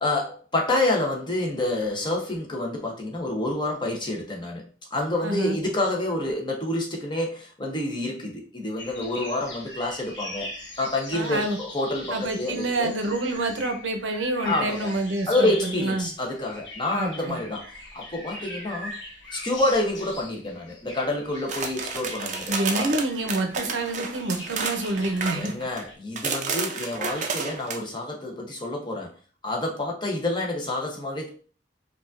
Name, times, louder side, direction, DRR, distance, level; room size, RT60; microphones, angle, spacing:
voice 1, 0.0-4.6 4.9-10.5 10.8-12.9 14.4-15.0 15.3-19.0 19.3-22.9 25.3-29.1 29.4-31.3, left 2 dB, 25° left, 0 dB, 0.8 m, -28 dB
voice 2, 5.2-5.6 11.1-11.6 12.1-16.1 16.9-17.4 22.5-25.5, right 2 dB, 80° right, 5 dB, 0.6 m, -27 dB
sound 1, 8.8-25.9, left 1 dB, 70° left, 1.0 m, -41 dB
sound 2, 21.5-25.8 26.2-27.8, right 5 dB, 40° right, 0.5 m, -31 dB
4.8 x 2.4 x 2.5 m, 0.40 s
head